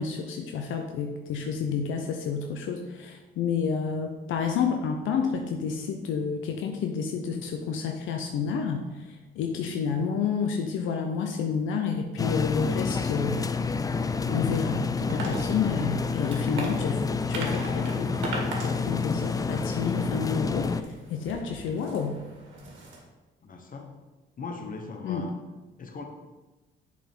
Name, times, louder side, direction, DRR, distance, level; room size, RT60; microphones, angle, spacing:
voice 1, 0.0-13.4 14.2-18.1 18.6-22.2 25.0-25.3, left 6 dB, 85° left, 3 dB, 0.6 m, -30 dB
sound 1, 12.2-20.8, left 4 dB, 20° left, 0.3 m, -29 dB
sound 2, 15.1-23.0, right 2 dB, 75° right, 1.8 m, -40 dB
voice 2, 23.4-23.9 24.4-25.3 25.8-26.0, left 3 dB, 45° left, 4 dB, 1.2 m, -39 dB
7.1 x 5.1 x 3.7 m, 1.2 s
cardioid pair, 90°, 20 cm